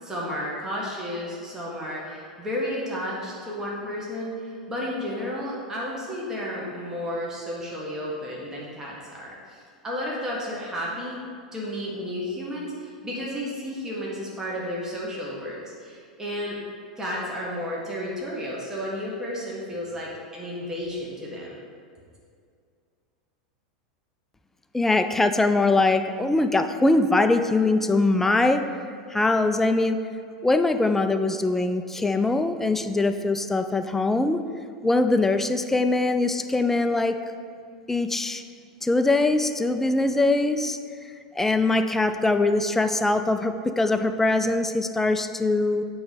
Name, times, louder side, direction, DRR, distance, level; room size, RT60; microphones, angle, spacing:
voice 1, 0.0-11.2 11.5-16.6 17.0-21.6, equal, 15° right, -5 dB, 1.4 m, -32 dB
voice 2, 24.7-28.7 29.1-30.0 30.4-34.4 34.8-37.2 37.9-38.4 38.8-40.8 41.4-45.9, left 2 dB, 10° left, 8 dB, 0.4 m, -22 dB
8.6 x 3.1 x 5.1 m, 2.3 s
figure-of-eight pair, 90°, 4 cm